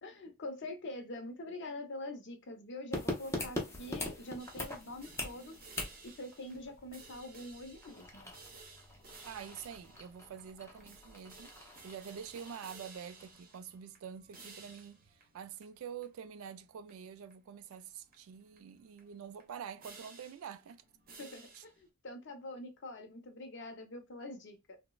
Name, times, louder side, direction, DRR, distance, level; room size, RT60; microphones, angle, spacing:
voice 1, 0.0-5.5 6.2-8.3 21.2-24.8, left 2 dB, 55° left, 0.6 m, -45 dB
sound 1, 2.9-13.4 13.7-13.8, left 1 dB, 10° left, 0.5 m, -43 dB
sound 2, 4.4-21.9, right 3 dB, 40° right, 0.7 m, -57 dB
voice 2, 9.2-20.8 21.5-21.6, right 7 dB, 70° right, 0.3 m, -47 dB
3.1 x 2.0 x 2.2 m
head